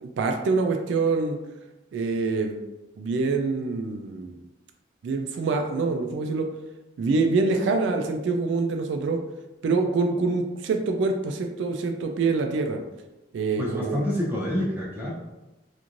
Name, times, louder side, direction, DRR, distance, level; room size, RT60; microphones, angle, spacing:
voice 1, 0.0-1.4 1.9-2.6 3.0-4.4 5.0-6.5 7.0-9.2 9.6-12.8 13.3-14.0, right 3 dB, 80° right, 5 dB, 0.3 m, -25 dB
voice 2, 13.6-15.1, left 1 dB, 10° right, -5 dB, 0.6 m, -27 dB
3.0 x 2.5 x 2.5 m, 1.0 s
head